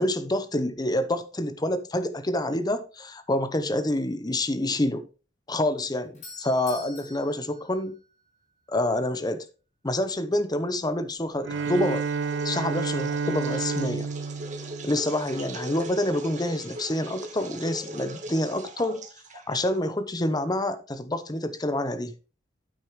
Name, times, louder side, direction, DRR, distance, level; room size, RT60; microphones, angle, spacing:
voice 1, 0.0-5.1 5.5-8.0 8.7-9.5 9.8-12.0 12.4-14.1 14.8-19.0 19.5-22.1, left 1 dB, 20° left, 0.8 m, -27 dB
Doorbell, 5.8-8.6, left 2 dB, 40° left, 3.9 m, -46 dB
Bowed string instrument, 11.4-15.7, right 5 dB, 70° right, 0.6 m, -31 dB
sound 1, 11.5-20.0, right 2 dB, 40° right, 1.6 m, -41 dB
9.3 x 8.2 x 3.2 m
head